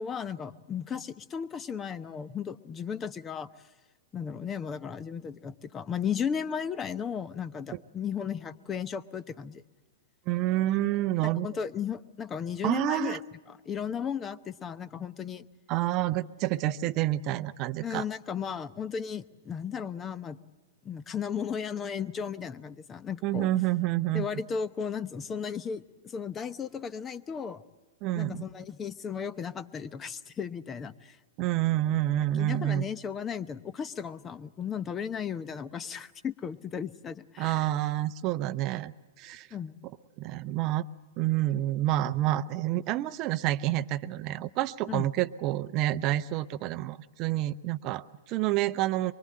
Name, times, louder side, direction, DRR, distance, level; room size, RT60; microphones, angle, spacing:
voice 1, 0.0-3.5 4.1-9.6 11.4-13.2 13.5-15.4 17.8-20.4 20.8-23.5 24.1-27.6 28.1-31.2 32.4-37.7 39.5-39.7 44.9-45.1, left 7 dB, 20° left, 17 dB, 0.8 m, -35 dB
voice 2, 10.3-11.5 12.6-13.2 15.7-18.0 23.2-24.3 28.0-28.4 31.4-32.9 37.4-38.9 39.2-39.5 40.2-40.8 41.2-49.1, right 14 dB, 35° right, 14 dB, 0.7 m, -28 dB
24.0 x 24.0 x 7.6 m, 1.3 s
figure-of-eight pair, 105°, 0 cm